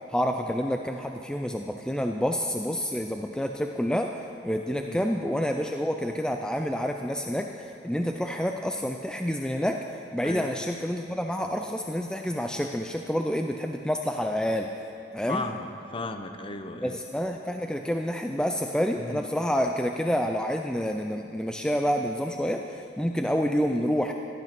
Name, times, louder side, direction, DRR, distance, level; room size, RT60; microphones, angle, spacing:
voice 1, 0.1-4.1 4.4-9.8 10.1-14.7 15.1-15.4 16.8-24.1, equal, 5° left, 3 dB, 0.5 m, -28 dB
voice 2, 15.3-17.0 19.0-19.3, left 2 dB, 30° left, 7 dB, 0.9 m, -35 dB
16.5 x 10.5 x 6.0 m, 2.8 s
head